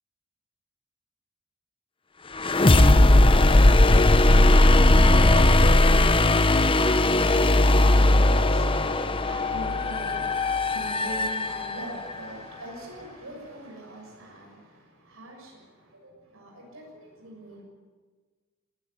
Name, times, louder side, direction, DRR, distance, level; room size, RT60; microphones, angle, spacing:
sound 1, 2.4-12.1, left 2 dB, 25° left, 0.8 m, -18 dB
voice 1, 3.9-17.6, right 1 dB, 90° right, -1 dB, 6.8 m, -42 dB
21.0 x 15.0 x 9.9 m, 1.4 s
head